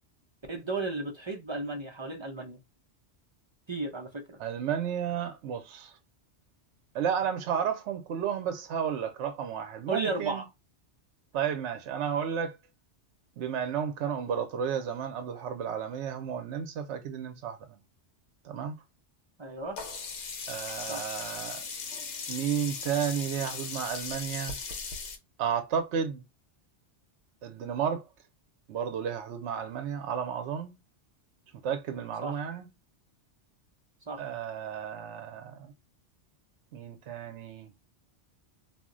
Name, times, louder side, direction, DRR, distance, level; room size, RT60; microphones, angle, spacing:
voice 1, 0.5-2.6 3.7-4.4 9.9-10.4 19.4-19.8 20.9-21.0 32.2-32.4 34.1-34.2, right 3 dB, 35° right, 0.4 m, -34 dB
voice 2, 4.4-5.9 6.9-10.4 11.3-12.6 13.4-17.8 18.4-18.8 20.5-21.6 22.3-24.6 25.4-26.2 27.4-28.1 28.7-30.7 31.6-32.7 34.2-35.7 36.7-37.7, right 8 dB, 80° right, 0.9 m, -32 dB
Sink (filling or washing), 19.8-25.2, left 5 dB, 75° left, 1.0 m, -38 dB
2.4 x 2.1 x 3.6 m
omnidirectional pair, 1.2 m